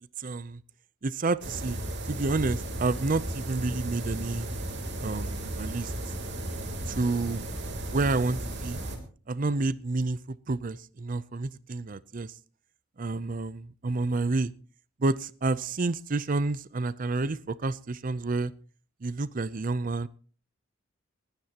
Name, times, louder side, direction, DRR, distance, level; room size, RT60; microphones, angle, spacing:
voice 1, 0.2-0.6 1.0-1.8 2.1-4.5 5.0-5.9 6.9-7.4 7.9-8.8 9.3-12.3 13.0-14.5 15.0-18.5 19.0-20.1, right 3 dB, 40° right, 17 dB, 0.6 m, -29 dB
sound 1, 1.4-9.0, right 1 dB, 60° right, 3.2 m, -35 dB
19.5 x 17.5 x 2.9 m, 0.41 s
head